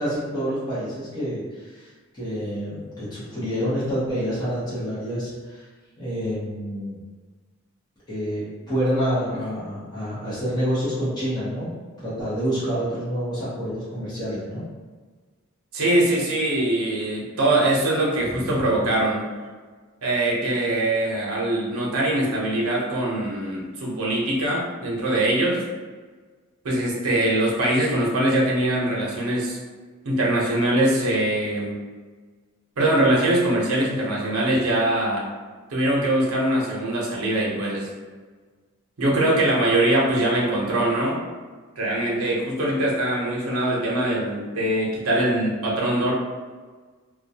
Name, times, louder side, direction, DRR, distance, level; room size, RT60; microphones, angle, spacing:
voice 1, 0.0-1.9 2.1-5.7 6.0-7.0 8.1-14.6 18.2-18.6, equal, 20° left, -12 dB, 0.7 m, -28 dB
voice 2, 15.7-19.2 20.0-25.6 26.6-29.6 30.1-31.8 32.8-35.3 35.7-37.9 39.0-41.2 41.8-46.1, right 1 dB, 75° right, -3 dB, 0.7 m, -22 dB
2.2 x 2.2 x 2.7 m, 1.4 s
head